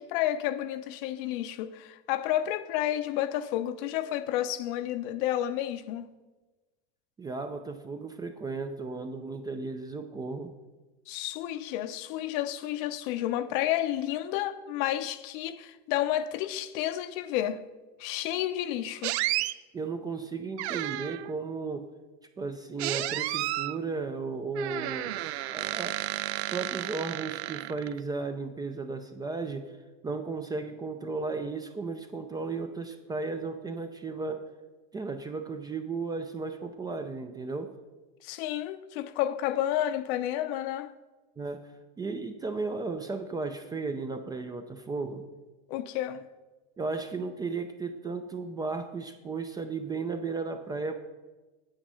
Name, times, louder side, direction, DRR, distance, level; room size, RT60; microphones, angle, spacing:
voice 1, 0.0-6.1 11.1-17.6 18.0-19.1 38.2-40.9 45.7-46.2, left 12 dB, 55° left, 0.6 m, -31 dB
voice 2, 7.2-10.5 19.7-21.9 22.4-26.0 26.4-29.7 30.0-34.4 34.9-37.7 41.4-41.6 42.0-45.2 46.8-50.9, right 4 dB, 10° right, 0.4 m, -35 dB
sound 1, 19.0-19.5 20.6-21.3 22.8-23.8 24.5-28.0, right 16 dB, 80° right, 0.5 m, -32 dB
8.9 x 7.5 x 5.5 m
supercardioid pair, 135°, 32 cm